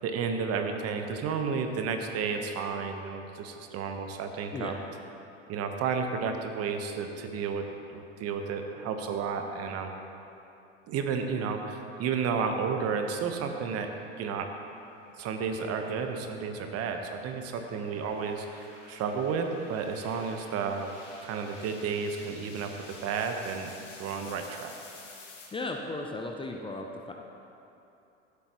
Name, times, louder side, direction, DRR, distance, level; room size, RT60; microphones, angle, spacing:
voice 1, 0.0-4.8 5.5-7.7 7.9-10.0 10.9-13.9 14.2-14.5 15.2-20.9 21.2-23.7 24.0-24.7, right 5 dB, 40° right, 5 dB, 1.1 m, -32 dB
sound 1, 13.9-25.5, left 2 dB, 75° left, 2.4 m, -52 dB
voice 2, 25.5-27.1, left 2 dB, 15° left, 2 dB, 0.7 m, -36 dB
15.5 x 8.2 x 3.0 m, 2.8 s
hypercardioid pair, 85°, 38 cm